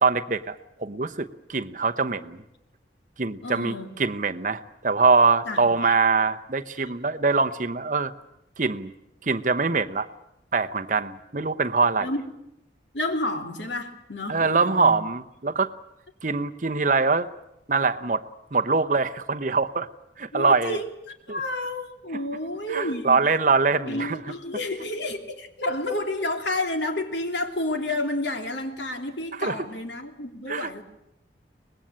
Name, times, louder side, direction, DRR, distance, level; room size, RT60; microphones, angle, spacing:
voice 1, 0.0-2.4 3.2-8.1 8.6-8.9 9.2-10.1 10.5-12.1 14.3-15.7 16.2-17.3 17.7-18.2 18.5-19.9 20.2-20.8 21.3-21.4 22.7-24.2 29.4-29.5 30.5-30.7, right 4 dB, 45° right, 9 dB, 0.9 m, -23 dB
voice 2, 3.4-4.0 5.5-6.0 6.7-6.9 12.0-12.2 12.9-14.9 20.3-20.8 21.3-23.2 23.9-30.8, left 1 dB, 75° left, 5 dB, 3.1 m, -30 dB
24.0 x 20.0 x 8.8 m, 0.85 s
head